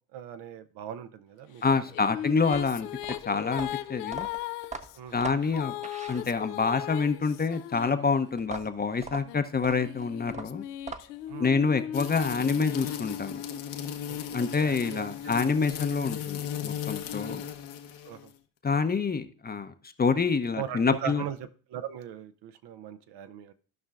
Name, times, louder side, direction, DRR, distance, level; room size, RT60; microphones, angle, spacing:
voice 1, 0.1-1.8 4.9-5.2 11.3-11.5 14.1-15.1 17.3-17.4 18.0-18.3 20.6-23.5, right 9 dB, 60° right, 11 dB, 0.7 m, -39 dB
Female singing, 1.6-8.6 9.2-13.0, left 13 dB, 80° left, 0.6 m, -38 dB
voice 2, 1.6-2.9 3.2-4.3 5.1-5.7 6.1-10.6 11.4-13.4 14.3-17.4 18.6-19.7 20.0-21.2, left 5 dB, 20° left, 9 dB, 0.7 m, -27 dB
sound 1, 2.4-6.7 8.4-11.3, right 4 dB, 15° right, 0.7 m, -41 dB
sound 2, 11.9-18.3, left 9 dB, 65° left, 1.1 m, -36 dB
14.5 x 5.5 x 2.5 m, 0.39 s
hypercardioid pair, 60°, 46 cm